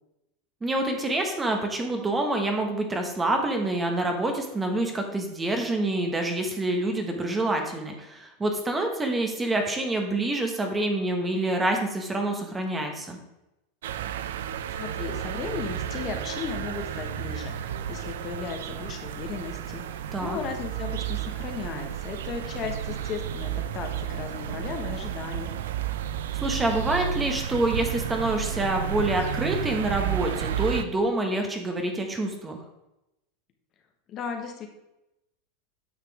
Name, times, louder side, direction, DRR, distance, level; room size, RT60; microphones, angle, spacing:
voice 1, 0.6-13.2 20.1-20.4 26.3-32.6, right 2 dB, 15° right, 3 dB, 1.4 m, -27 dB
sound 1, 13.8-30.8, right 10 dB, 80° right, 0.5 m, -32 dB
voice 2, 14.8-25.6 34.1-34.7, left 6 dB, 40° left, 4 dB, 1.2 m, -36 dB
9.1 x 5.8 x 3.5 m, 0.92 s
hypercardioid pair, 110°, 0 cm